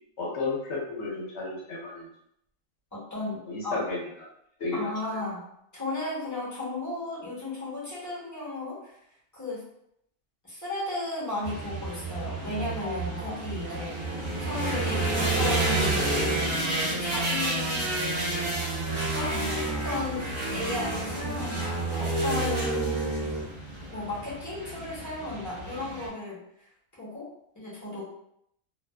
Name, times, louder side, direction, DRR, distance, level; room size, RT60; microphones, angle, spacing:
voice 1, 0.2-2.1 3.5-4.0 4.6-4.8, left 3 dB, 60° left, -3 dB, 1.0 m, -32 dB
voice 2, 2.9-3.8 4.7-5.5 5.7-9.0 9.3-9.6 10.4-16.1 16.8-17.9 19.1-23.3 23.9-26.4 26.9-28.0, left 2 dB, 15° left, -7 dB, 0.7 m, -35 dB
sound 1, 11.4-26.1, right 2 dB, 40° right, 0.7 m, -29 dB
2.5 x 2.2 x 2.3 m, 0.74 s
omnidirectional pair, 1.4 m